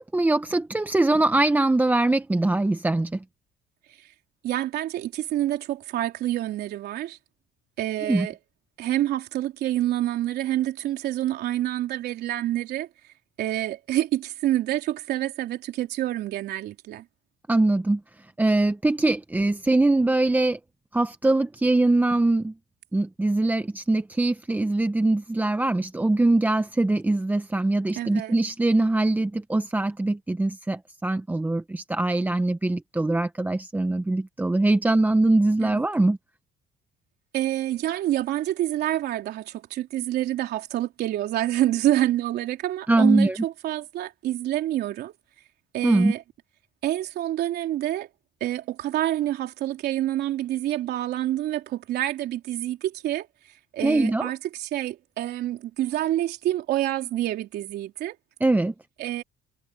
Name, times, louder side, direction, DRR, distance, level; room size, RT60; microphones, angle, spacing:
voice 1, 0.0-3.2 8.0-8.3 17.5-18.0 18.4-20.6 20.9-22.5 22.9-36.2 42.9-43.4 45.8-46.1 53.8-54.3 58.4-58.7, right 2 dB, 10° right, 0.9 m, -22 dB
voice 2, 4.4-7.2 7.8-8.4 8.8-12.9 13.4-17.1 28.0-28.4 35.6-35.8 37.3-45.1 45.7-46.2 46.8-48.1 48.4-53.3 53.7-58.2 59.0-59.2, right 13 dB, 75° right, 3.7 m, -27 dB
cardioid pair, 110°, 17 cm